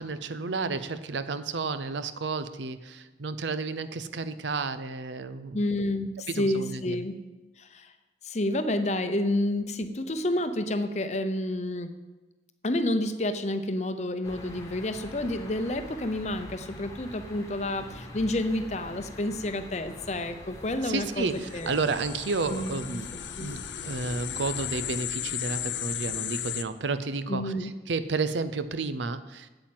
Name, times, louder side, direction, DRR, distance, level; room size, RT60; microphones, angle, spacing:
voice 1, 0.0-5.6 6.3-7.0 20.8-23.1 23.4-29.5, right 4 dB, 85° right, 12 dB, 0.7 m, -31 dB
voice 2, 5.5-7.1 7.6-7.9 8.2-11.9 12.6-21.8 22.5-23.0 23.4-23.6 27.3-27.7, left 1 dB, 40° left, 9 dB, 0.7 m, -29 dB
sound 1, 14.2-25.0, left 1 dB, 20° left, 1.2 m, -45 dB
sound 2, 21.3-26.6, left 11 dB, 80° left, 0.5 m, -35 dB
8.5 x 7.8 x 7.6 m, 1.2 s
head